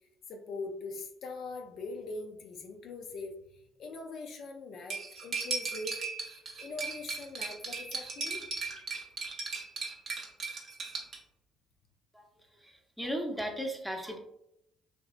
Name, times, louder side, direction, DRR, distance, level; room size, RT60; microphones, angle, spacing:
voice 1, 0.3-6.0 6.6-8.4, left 3 dB, 65° left, 3 dB, 0.4 m, -42 dB
Cutlery silverware, 4.9-11.2, right 4 dB, 55° right, 0.7 m, -37 dB
voice 2, 12.6-14.2, equal, ahead, 1 dB, 0.6 m, -36 dB
2.7 x 2.0 x 2.4 m, 0.80 s
supercardioid pair, 65°, 0 cm